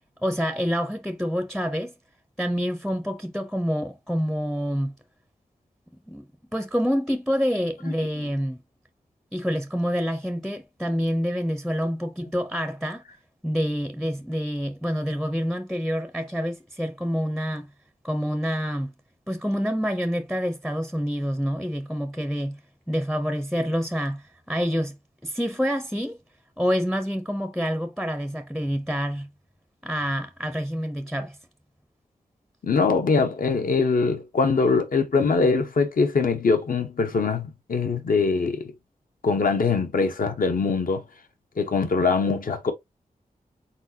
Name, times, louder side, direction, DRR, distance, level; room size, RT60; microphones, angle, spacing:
voice 1, 0.2-1.9 2.4-4.9 6.1-6.3 6.5-8.6 9.3-13.0 13.4-17.7 18.0-18.9 19.3-22.6 22.9-25.0 25.2-26.2 26.6-29.3 29.8-31.4, equal, ahead, 0.5 m, -27 dB
voice 2, 32.6-38.7 39.2-41.0 41.6-42.7, left 4 dB, 70° left, 1.0 m, -22 dB
4.3 x 4.2 x 2.7 m
wide cardioid pair, 105°, 15 cm